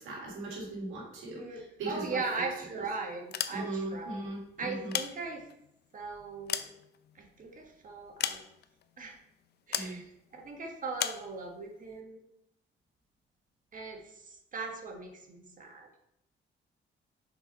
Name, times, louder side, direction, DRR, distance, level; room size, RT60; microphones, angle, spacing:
voice 1, 0.0-2.2 3.5-5.0 9.7-10.0, right 2 dB, 80° right, -2 dB, 1.8 m, -38 dB
voice 2, 1.3-4.2 4.6-5.4 5.9-6.7 7.1-8.4 9.0-9.2 9.7-10.0 10.3-12.2 13.7-15.9, right 3 dB, 40° right, 2 dB, 1.4 m, -39 dB
sound 1, 3.2-4.0 4.7-5.7 6.2-7.4 8.2-8.8 9.7-10.0 11.0-11.3, left 9 dB, 55° left, 0.5 m, -35 dB
6.0 x 4.1 x 4.1 m, 0.79 s
cardioid pair, 90°, 20 cm